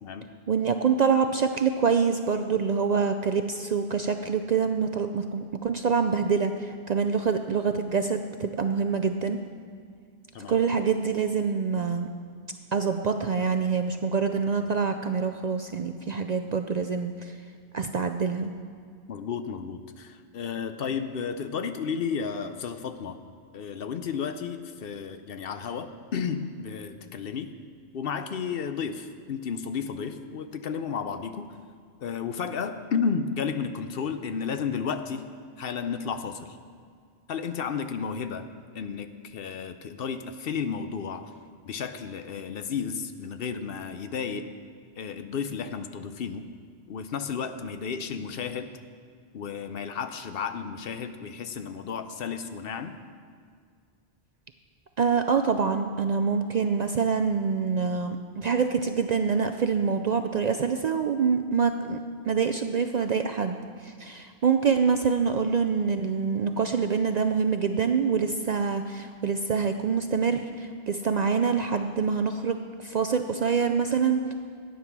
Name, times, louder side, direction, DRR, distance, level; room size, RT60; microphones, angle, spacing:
voice 1, 0.5-9.4 10.5-12.1 12.7-17.4 17.7-18.5 55.0-62.0 62.3-63.6 63.8-74.3, right 5 dB, 55° right, 7 dB, 0.5 m, -26 dB
voice 2, 19.1-23.2 23.5-27.5 27.9-31.6 32.0-35.3 35.6-36.6 37.3-38.5 38.7-41.3 41.6-44.5 45.0-46.5 46.9-48.7 49.3-53.0, left 6 dB, 65° left, 9 dB, 0.8 m, -32 dB
13.0 x 9.1 x 6.0 m, 2.1 s
omnidirectional pair, 1.1 m